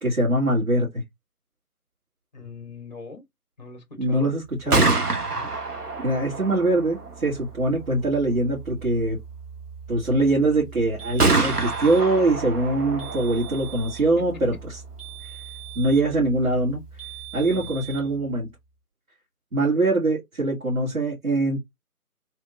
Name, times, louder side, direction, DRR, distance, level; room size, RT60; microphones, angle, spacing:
voice 1, 0.0-1.0 4.0-4.8 6.0-9.2 9.9-14.8 15.2-15.4 15.8-16.8 17.3-18.5 19.5-21.6, right 2 dB, 60° right, 2.0 m, -23 dB
voice 2, 2.3-3.2 3.6-4.4 4.6-5.0 5.3-5.5 17.5-17.7, left 3 dB, 30° left, 0.9 m, -40 dB
Gunshot gunfire, 4.5-18.3, right 3 dB, 85° right, 1.2 m, -30 dB
sound 1, 11.0-12.1 13.0-14.1 15.0-16.1 17.0-18.1, right 19 dB, 20° right, 0.8 m, -41 dB
3.4 x 3.1 x 2.5 m
figure-of-eight pair, 150°, 45 cm